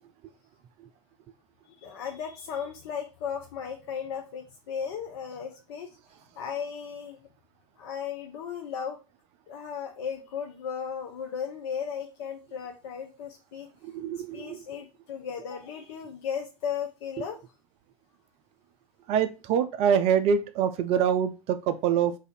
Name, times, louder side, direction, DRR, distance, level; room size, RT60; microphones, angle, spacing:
voice 1, 1.7-5.9 6.4-7.2 7.8-9.0 9.5-13.7 14.3-17.4, left 7 dB, 55° left, 3 dB, 0.6 m, -36 dB
voice 2, 13.9-14.6 19.1-22.2, right 8 dB, 40° right, 10 dB, 0.4 m, -25 dB
2.7 x 2.5 x 4.1 m, 0.31 s
figure-of-eight pair, 85°, 16 cm